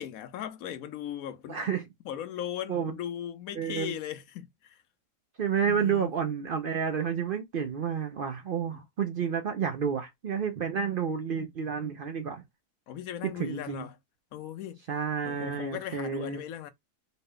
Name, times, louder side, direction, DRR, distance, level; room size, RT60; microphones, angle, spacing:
voice 1, 0.0-1.6 2.0-4.8 5.6-6.1 8.7-8.8 12.9-14.0 14.3-14.8 15.2-16.7, left 10 dB, 70° left, 1.0 m, -38 dB
voice 2, 1.5-1.8 2.7-2.9 3.6-3.9 5.4-12.4 13.2-13.9 14.9-16.4, right 7 dB, 70° right, 0.5 m, -30 dB
4.2 x 2.2 x 3.6 m
omnidirectional pair, 1.6 m